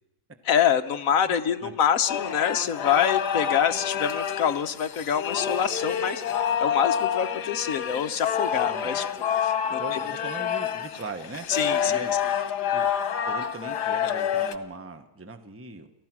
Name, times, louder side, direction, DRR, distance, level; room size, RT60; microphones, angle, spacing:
voice 1, 0.4-9.1 9.4-10.0 11.5-12.1, left 8 dB, 60° left, 8 dB, 1.3 m, -26 dB
sound 1, 2.1-14.5, left 8 dB, 85° left, 1.6 m, -28 dB
voice 2, 9.7-11.5 11.9-12.9 13.2-15.9, right 3 dB, 10° right, 8 dB, 1.0 m, -40 dB
29.5 x 14.5 x 6.1 m, 0.92 s
omnidirectional pair, 1.7 m